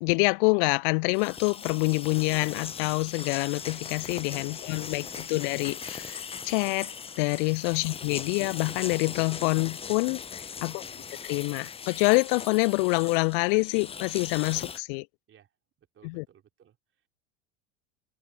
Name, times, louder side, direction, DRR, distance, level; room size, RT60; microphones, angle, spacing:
voice 1, 0.0-6.9 7.2-10.2 10.6-10.8 11.2-15.1 16.0-16.2, left 33 dB, 45° left, 0.5 m, -26 dB
sound 1, 1.1-14.8, left 6 dB, 15° left, 0.8 m, -40 dB
voice 2, 4.5-5.6 7.9-8.0 10.8-11.1 15.3-15.5 15.8-16.8, right 10 dB, 30° right, 4.7 m, -61 dB
figure-of-eight pair, 75°, 39 cm